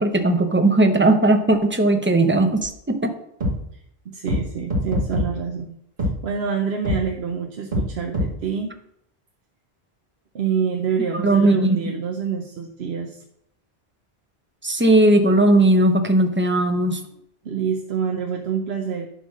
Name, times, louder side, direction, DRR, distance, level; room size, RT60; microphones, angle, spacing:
voice 1, 0.0-3.1 11.1-11.8 14.6-17.0, right 2 dB, 15° right, 7 dB, 0.7 m, -17 dB
sound 1, 2.6-2.7 3.4-3.5 4.3-4.4 4.7-5.3 6.0-6.1 6.8-7.0 7.7-7.9 8.1-8.3, left 1 dB, 55° right, 2.1 m, -22 dB
voice 2, 3.7-8.7 10.3-13.2 17.4-19.1, right 6 dB, 75° right, 3 dB, 1.0 m, -27 dB
10.5 x 3.7 x 6.4 m, 0.74 s
omnidirectional pair, 1.1 m